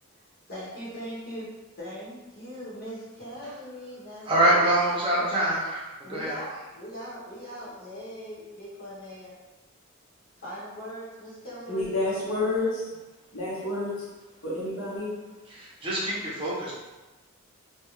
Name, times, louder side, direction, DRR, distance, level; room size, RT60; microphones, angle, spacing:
voice 1, 0.5-1.5 1.7-4.5 5.1-5.3 6.0-9.3 10.4-12.6, equal, 45° left, -10 dB, 1.0 m, -40 dB
voice 2, 4.3-5.8 6.1-6.4 15.5-16.8, right 1 dB, 25° right, -6 dB, 0.7 m, -25 dB
voice 3, 11.7-12.8 13.3-13.9 14.4-15.1, left 2 dB, 75° left, -7 dB, 1.0 m, -29 dB
2.4 x 2.3 x 3.0 m, 1.1 s
head